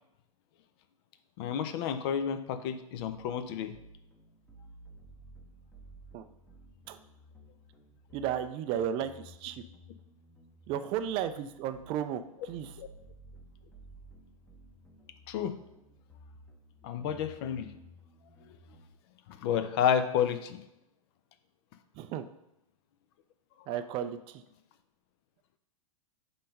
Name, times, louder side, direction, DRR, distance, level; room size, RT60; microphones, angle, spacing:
voice 1, 1.4-3.7 12.8-12.9 15.3-15.6 16.8-17.8 19.3-20.6, left 8 dB, 45° left, 11 dB, 0.6 m, -30 dB
sound 1, 3.0-18.9, equal, 5° left, 0.9 m, -55 dB
voice 2, 8.1-9.6 10.7-12.7 22.0-22.3 23.7-24.4, right 9 dB, 30° right, 10 dB, 0.4 m, -34 dB
5.6 x 3.9 x 5.2 m, 0.85 s
figure-of-eight pair, 105°, 18 cm